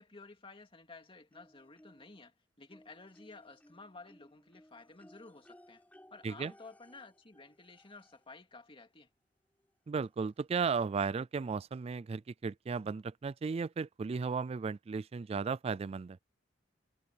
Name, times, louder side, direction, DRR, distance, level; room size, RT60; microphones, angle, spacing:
voice 1, 0.0-5.8 6.1-9.1, left 3 dB, 30° left, 2.7 m, -53 dB
sound 1, 1.3-2.3 2.7-8.4 9.6-9.7 10.1-10.2, left 1 dB, 10° left, 6.9 m, -61 dB
voice 2, 9.9-16.2, right 5 dB, 30° right, 0.3 m, -35 dB
head